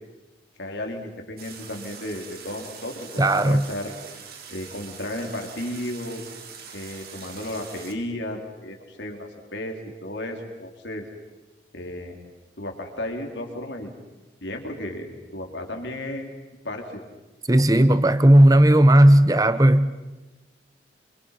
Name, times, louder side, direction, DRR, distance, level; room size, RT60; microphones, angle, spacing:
voice 1, 0.6-3.9 4.5-6.2 6.7-11.0 11.7-12.2 12.6-13.9 14.4-15.1 15.3-16.3 16.6-17.0, left 1 dB, 85° left, 4.1 m, -34 dB
sound 1, 1.4-7.9, right 6 dB, 55° right, 3.2 m, -43 dB
voice 2, 3.2-3.7 17.5-19.9, right 1 dB, 20° right, 1.0 m, -15 dB
27.0 x 27.0 x 6.0 m
head